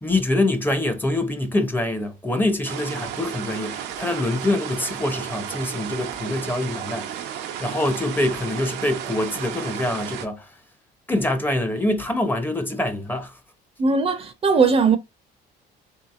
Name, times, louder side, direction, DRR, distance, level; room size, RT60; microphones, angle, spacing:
voice 1, 0.0-7.3 7.6-10.5 11.1-13.3, left 1 dB, 10° left, 0.6 m, -25 dB
sound 1, 2.6-10.3, right 9 dB, 90° right, 0.6 m, -33 dB
voice 2, 13.8-15.0, right 4 dB, 35° right, 0.5 m, -19 dB
3.4 x 2.8 x 2.4 m
cardioid pair, 110°, 17 cm